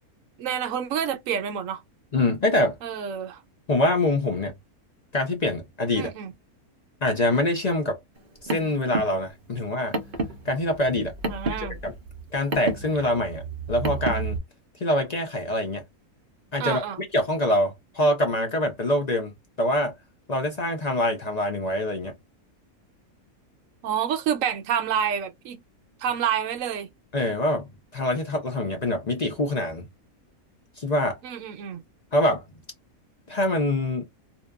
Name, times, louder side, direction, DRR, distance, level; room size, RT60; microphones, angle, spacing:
voice 1, 0.4-1.8 2.8-3.4 6.0-6.3 11.3-11.8 16.6-17.0 23.8-25.6 26.0-26.9 31.2-31.8, right 8 dB, 70° right, 1.0 m, -28 dB
voice 2, 2.1-2.8 3.7-4.5 5.1-6.1 7.0-8.0 8.4-9.9 10.4-11.1 11.8-11.9 12.3-13.4 13.7-14.4 14.8-15.8 16.5-19.9 20.3-22.1 27.1-29.9 30.8-31.2 32.1-32.4 33.3-34.1, left 1 dB, 50° left, 0.5 m, -25 dB
Car, 8.2-14.4, right 3 dB, 50° right, 0.6 m, -31 dB
2.8 x 2.2 x 2.3 m
omnidirectional pair, 1.5 m